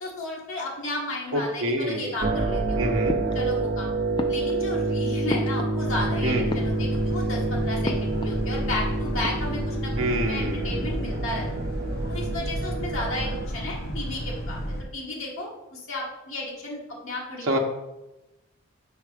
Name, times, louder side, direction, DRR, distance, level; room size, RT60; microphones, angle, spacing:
voice 1, 0.0-2.9 3.3-3.9 4.3-11.5 12.1-14.6 14.9-17.4, left 2 dB, 75° left, -3 dB, 1.4 m, -33 dB
voice 2, 1.3-2.1 2.8-3.2 6.2-6.5 10.0-11.0 17.4-17.6, right 1 dB, 70° right, 0 dB, 0.8 m, -27 dB
sound 1, 2.2-13.5, right 2 dB, 40° right, 0.6 m, -28 dB
sound 2, 3.1-3.8 4.2-6.1 6.4-7.2 7.8-8.5 8.7-8.8 9.1-9.8, left 2 dB, 20° left, 0.3 m, -35 dB
Boat Water vehicle, 5.8-14.8, equal, 50° left, 0.8 m, -33 dB
5.0 x 4.7 x 4.9 m, 0.99 s
head